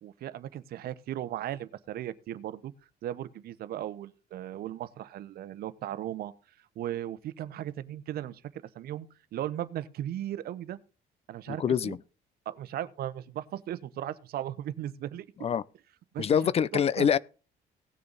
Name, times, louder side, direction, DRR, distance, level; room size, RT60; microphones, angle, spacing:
voice 1, 0.0-2.7 3.0-6.3 6.8-8.4 8.7-9.1 9.3-10.8 11.3-12.0 12.5-15.3 16.1-16.3 16.7-17.1, right 12 dB, 65° right, 0.9 m, -37 dB
voice 2, 11.5-12.0 15.4-15.6 16.2-17.2, left 8 dB, 35° left, 0.5 m, -25 dB
17.5 x 6.8 x 4.0 m
cardioid pair, 110°, 17 cm